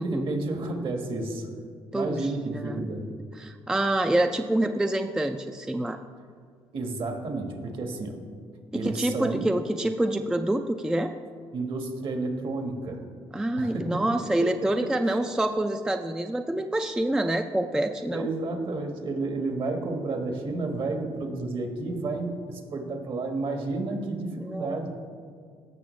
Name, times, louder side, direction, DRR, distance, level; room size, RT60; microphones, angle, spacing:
voice 1, 0.0-1.5 1.9-3.0 6.7-8.2 8.7-9.5 11.5-13.0 13.6-15.2 18.1-24.9, right 3 dB, 55° right, 4 dB, 1.4 m, -31 dB
voice 2, 1.9-3.1 3.4-6.0 8.7-11.1 13.3-18.3 24.4-24.7, right 1 dB, 5° right, 7 dB, 0.3 m, -27 dB
15.5 x 6.1 x 3.1 m, 2.2 s
cardioid pair, 85°, 11 cm